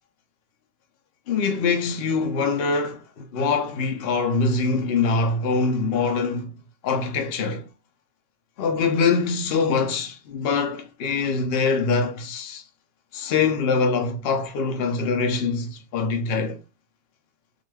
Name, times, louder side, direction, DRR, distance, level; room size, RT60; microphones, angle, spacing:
voice 1, 1.3-6.5 6.8-7.7 8.6-12.6 13.1-16.6, left 4 dB, 70° left, 0.5 m, -24 dB
2.5 x 2.3 x 3.2 m
omnidirectional pair, 1.7 m